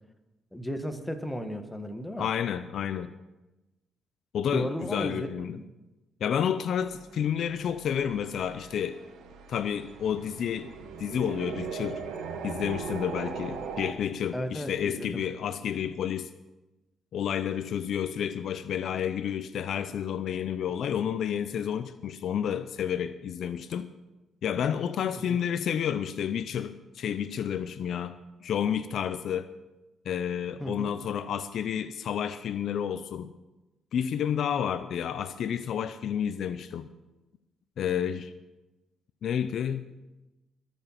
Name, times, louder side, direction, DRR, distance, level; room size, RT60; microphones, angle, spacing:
voice 1, 0.5-2.3 4.5-5.3 5.5-5.6 14.3-15.2 25.1-25.4 30.6-30.9, equal, 5° left, 6 dB, 1.6 m, -34 dB
voice 2, 2.2-3.1 4.3-5.6 6.2-9.0 9.5-10.7 11.0-12.0 12.4-16.3 17.1-23.9 24.4-29.5 30.1-33.3 33.9-36.9 37.8-38.3 39.2-39.9, left 8 dB, 65° left, 12 dB, 0.6 m, -30 dB
sound 1, 6.8-13.9, right 6 dB, 80° right, 1.5 m, -39 dB
21.0 x 7.2 x 5.9 m, 1.0 s
cardioid pair, 90°, 0 cm